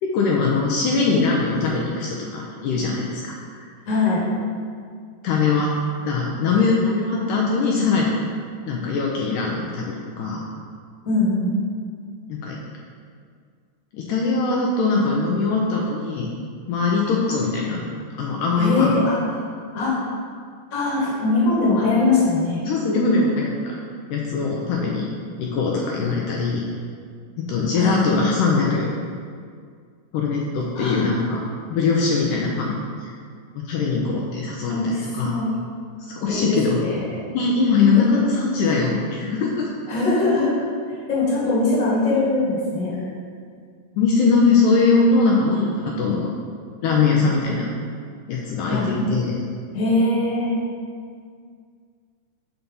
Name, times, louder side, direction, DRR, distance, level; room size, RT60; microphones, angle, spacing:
voice 1, 0.0-3.3 5.2-5.8 6.0-8.1 8.7-10.4 12.3-12.6 13.9-16.3 16.7-17.8 18.1-19.0 22.7-23.8 24.1-25.1 25.4-26.7 27.5-28.9 30.1-31.4 31.7-33.1 33.6-35.3 36.0-36.8 37.3-39.7 44.0-46.3 46.8-47.7 48.3-49.3, left 4 dB, 80° left, -2 dB, 2.0 m, -21 dB
voice 2, 3.8-4.2 11.0-11.5 18.6-19.5 19.7-19.9 20.7-22.7 27.7-28.0 30.7-31.2 34.7-35.6 36.3-37.0 39.9-42.9 48.6-48.9 49.7-50.5, left 2 dB, 35° left, -7 dB, 1.4 m, -22 dB
5.8 x 4.0 x 5.3 m, 2.1 s
omnidirectional pair, 4.1 m